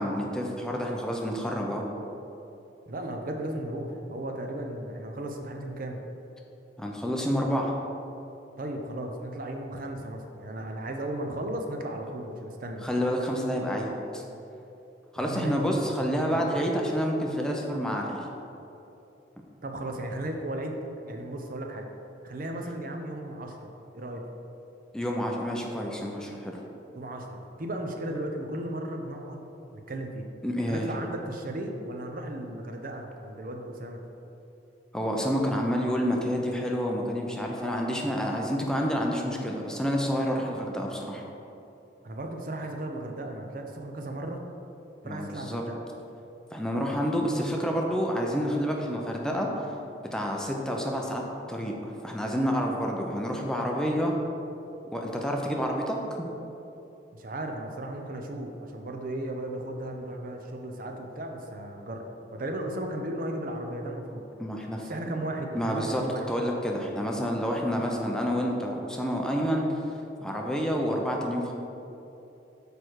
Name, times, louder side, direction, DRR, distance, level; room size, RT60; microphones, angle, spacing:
voice 1, 0.0-1.8 6.8-7.7 12.8-14.2 15.1-18.2 24.9-26.6 30.4-30.9 34.9-41.2 45.0-45.6 46.5-49.5 50.1-51.2 51.5-54.1 54.9-56.3 64.4-64.9 65.5-66.0 66.3-69.8 70.2-71.5, equal, 5° left, 0 dB, 0.6 m, -29 dB
voice 2, 2.9-6.0 8.6-12.9 15.2-16.6 19.6-20.8 21.0-21.9 22.2-23.7 23.9-24.2 26.9-29.5 29.7-30.3 30.7-34.0 42.0-44.4 45.0-45.8 57.1-64.2 64.8-66.2, right 1 dB, 50° right, 3 dB, 0.6 m, -35 dB
6.5 x 5.0 x 4.6 m, 2.9 s
head